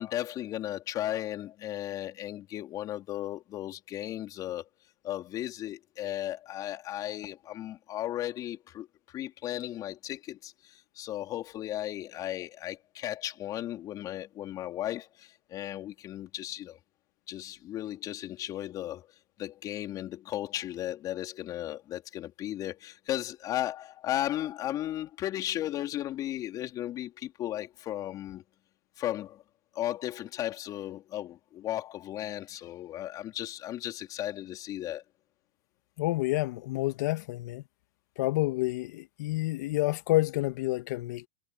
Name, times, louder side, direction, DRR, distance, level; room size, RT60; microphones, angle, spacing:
voice 1, 0.0-4.7 5.0-16.8 17.3-19.1 19.4-28.4 29.0-29.4 29.7-35.0, left 13 dB, 35° left, 4.2 m, -35 dB
voice 2, 36.0-37.6 38.2-41.3, left 19 dB, 60° left, 2.3 m, -29 dB
hypercardioid pair, 120°, 10 cm